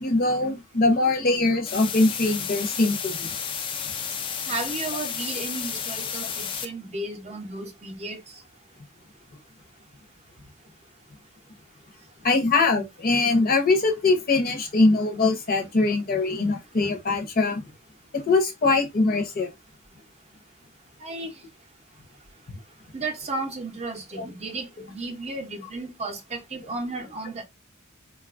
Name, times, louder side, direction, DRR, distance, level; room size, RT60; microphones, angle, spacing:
voice 1, 0.0-3.3 12.2-17.6 18.1-19.5 24.1-24.2, left 3 dB, 45° left, 0.7 m, -22 dB
sound 1, 1.7-6.7, left 7 dB, 25° left, 0.3 m, -32 dB
voice 2, 4.5-8.2 21.0-21.3 22.9-27.4, right 2 dB, 30° right, 0.6 m, -34 dB
3.8 x 2.3 x 2.4 m
head